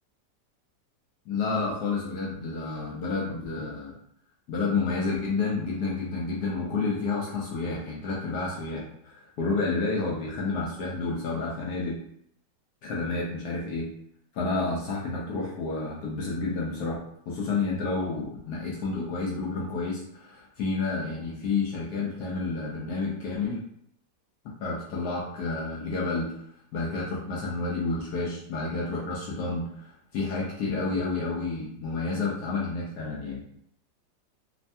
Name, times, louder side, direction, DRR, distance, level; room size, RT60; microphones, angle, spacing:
voice 1, 1.3-3.9 4.5-12.0 12.8-13.9 14.3-23.6 24.6-26.3 26.7-33.4, left 3 dB, 70° left, -4 dB, 1.0 m, -30 dB
3.2 x 2.2 x 2.6 m, 0.70 s
omnidirectional pair, 2.0 m